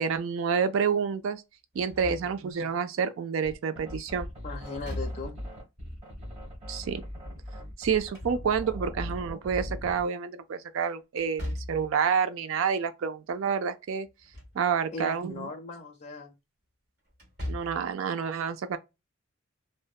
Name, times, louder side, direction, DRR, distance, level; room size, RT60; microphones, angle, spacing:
voice 1, 0.0-1.4 1.8-4.3 6.7-7.0 7.8-14.1 14.5-15.5 17.5-18.8, right 6 dB, 65° right, 0.4 m, -28 dB
Slam / Thump thud, 1.7-2.6 4.7-5.6 7.8-8.9 11.2-12.0 14.0-14.6 15.0-15.1 17.1-17.9, left 1 dB, 50° right, 1.1 m, -38 dB
sound 1, 3.4-10.1, equal, 30° right, 0.9 m, -40 dB
voice 2, 4.4-5.4 14.9-16.4, left 3 dB, 35° left, 0.5 m, -39 dB
2.7 x 2.1 x 2.3 m
head